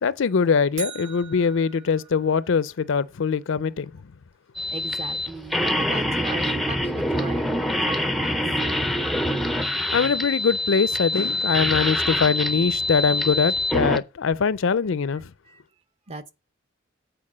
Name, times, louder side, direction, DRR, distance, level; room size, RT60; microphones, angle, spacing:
voice 1, 0.0-4.0 9.8-15.3, left 5 dB, 65° left, 0.5 m, -22 dB
sound 1, 0.8-2.9, right 6 dB, 60° right, 0.8 m, -40 dB
sound 2, 4.5-14.0, left 1 dB, ahead, 0.5 m, -25 dB
voice 2, 4.7-7.5 7.8-8.4 15.5-15.6 16.1-16.3, right 2 dB, 30° right, 0.8 m, -36 dB
8.6 x 4.5 x 7.3 m
head